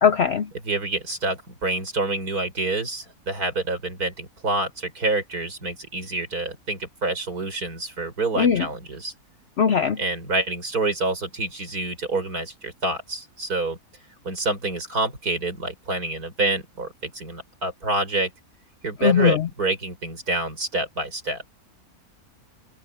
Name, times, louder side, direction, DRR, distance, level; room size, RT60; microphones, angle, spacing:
voice 1, 0.0-0.5 8.4-8.7 9.6-10.0 19.0-19.5, left 7 dB, 55° left, 0.8 m, -19 dB
voice 2, 0.6-9.1 10.0-13.8 14.2-18.3 18.8-21.4, right 2 dB, 75° right, 5.8 m, -27 dB
omnidirectional pair, 1.6 m